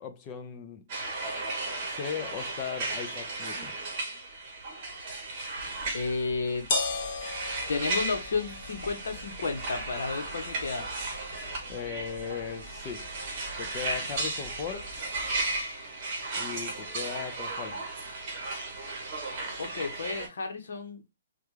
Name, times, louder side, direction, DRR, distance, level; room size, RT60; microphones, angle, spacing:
voice 1, 0.0-0.9 1.9-3.7 11.7-13.1 13.6-14.9 16.4-17.8, left 7 dB, 20° left, 0.4 m, -37 dB
sound 1, 0.9-20.3, right 3 dB, 25° right, 1.0 m, -35 dB
sound 2, 5.6-15.6, left 3 dB, 35° left, 0.9 m, -39 dB
voice 2, 5.9-6.7 7.7-10.8 19.6-21.0, left 4 dB, 65° left, 1.0 m, -32 dB
3.4 x 2.3 x 3.1 m
hypercardioid pair, 175°, 0 cm